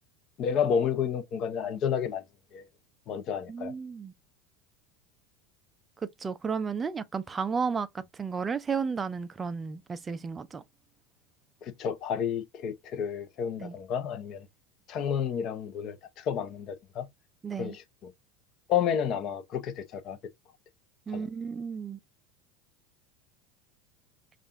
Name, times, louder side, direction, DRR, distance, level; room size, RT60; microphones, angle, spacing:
voice 1, 0.4-2.2 2.5-2.6 3.1-3.7 11.6-14.5 14.9-17.0 17.6-18.1 18.7-20.2 21.1-21.3, left 8 dB, 40° left, 0.8 m, -31 dB
voice 2, 3.5-4.1 6.2-10.6 13.6-13.7 17.4-17.8 21.1-22.0, right 5 dB, 15° right, 0.4 m, -33 dB
5.4 x 2.5 x 2.5 m
supercardioid pair, 145°, 0 cm